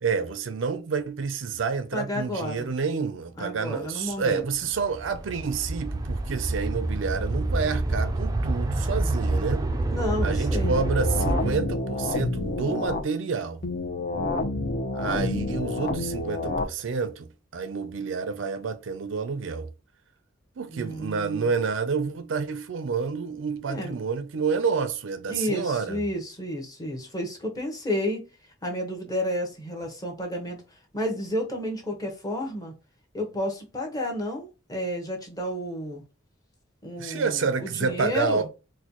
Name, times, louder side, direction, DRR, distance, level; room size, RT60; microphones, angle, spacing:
voice 1, 0.0-9.7 10.2-13.6 14.9-19.7 20.6-26.0 37.0-38.5, right 5 dB, 85° right, 0.5 m, -29 dB
voice 2, 1.9-2.7 3.4-4.4 9.9-10.8 20.7-21.5 23.7-24.0 25.3-28.2 28.6-30.6 30.9-32.7 33.1-36.0 36.8-38.5, left 1 dB, 20° left, 0.9 m, -31 dB
sound 1, 4.5-11.6, right 2 dB, 20° right, 0.4 m, -27 dB
sound 2, 10.6-13.0 13.6-16.6, left 2 dB, 50° left, 0.7 m, -29 dB
4.1 x 2.3 x 2.9 m
head